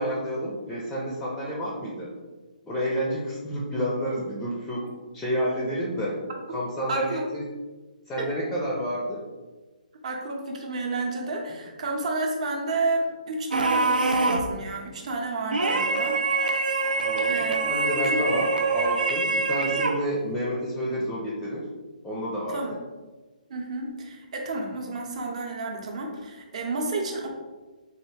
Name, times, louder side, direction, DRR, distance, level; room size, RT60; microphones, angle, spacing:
voice 1, 0.0-2.1 2.7-4.9 5.1-6.2 6.5-7.5 8.1-9.2 17.0-21.6 22.0-22.6, equal, 5° left, -4 dB, 0.4 m, -30 dB
voice 2, 6.9-7.2 8.2-8.3 10.0-16.2 17.1-17.6 18.0-18.2 22.5-22.8 23.5-27.3, right 2 dB, 50° right, 1 dB, 0.7 m, -31 dB
sound 1, 13.5-14.6 15.5-20.1, right 3 dB, 90° right, 0.4 m, -25 dB
3.4 x 2.4 x 3.2 m, 1.3 s
hypercardioid pair, 150°, 5 cm